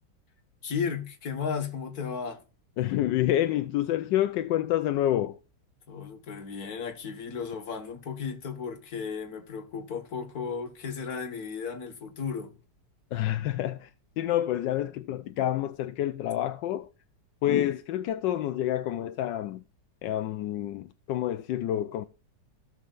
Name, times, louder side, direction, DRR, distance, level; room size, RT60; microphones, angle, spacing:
voice 1, 0.6-2.4 5.9-12.6, left 6 dB, 55° left, 2.0 m, -34 dB
voice 2, 2.8-5.4 13.1-16.9 17.4-19.6 20.0-22.0, left 12 dB, 85° left, 1.3 m, -28 dB
16.5 x 6.7 x 2.5 m
omnidirectional pair, 1.9 m